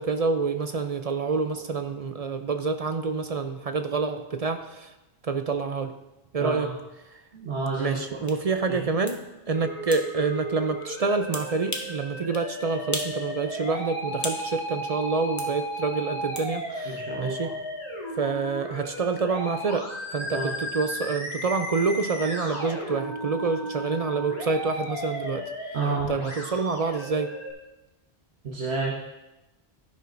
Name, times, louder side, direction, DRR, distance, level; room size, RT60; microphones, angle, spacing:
voice 1, 0.0-4.9 5.2-5.9 6.3-6.7 7.1-7.2 7.8-17.5 18.2-25.5 26.1-27.3, right 4 dB, 45° right, 8 dB, 0.5 m, -27 dB
voice 2, 6.4-6.7 7.4-7.9 16.9-17.5 20.3-20.5 25.7-26.1 28.4-29.0, right 3 dB, 85° right, -2 dB, 1.4 m, -29 dB
sound 1, 8.3-8.4 9.1-9.2 9.9-10.1 11.3-12.0 12.3-12.5 12.9-13.2 13.5-14.5 15.4-15.5 16.4-16.5, left 2 dB, 20° left, 0.9 m, -35 dB
Musical instrument, 9.5-27.5, equal, 35° left, 3.0 m, -35 dB
12.5 x 10.5 x 2.6 m, 0.99 s
omnidirectional pair, 1.1 m